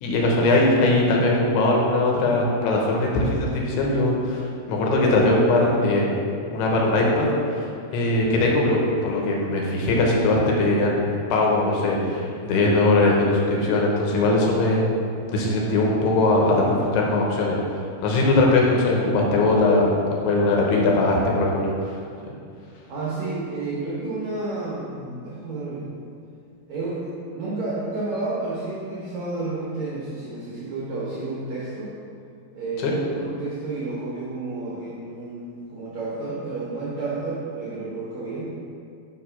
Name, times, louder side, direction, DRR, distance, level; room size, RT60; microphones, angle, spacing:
voice 1, 0.0-6.1 6.5-11.0 11.3-14.8 15.3-17.6 18.0-19.9 20.2-22.0 32.8-32.9, left 2 dB, 80° left, -2 dB, 3.0 m, -20 dB
voice 2, 16.4-16.8 22.0-22.2 22.9-25.9 26.7-31.9 32.5-38.5, right 3 dB, 80° right, -6 dB, 1.6 m, -31 dB
6.2 x 4.9 x 5.7 m, 2.4 s
omnidirectional pair, 4.8 m